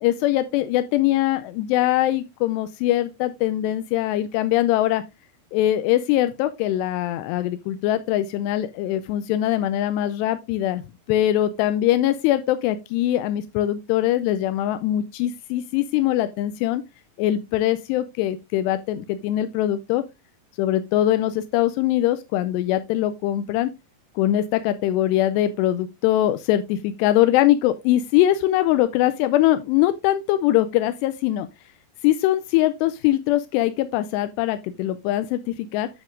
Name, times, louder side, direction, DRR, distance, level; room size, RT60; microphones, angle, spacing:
voice 1, 0.0-5.0 5.5-10.8 11.1-16.8 17.2-20.0 20.6-23.7 24.2-31.5 32.0-35.9, left 13 dB, 85° left, 2.7 m, -22 dB
9.7 x 7.3 x 2.5 m
omnidirectional pair, 4.8 m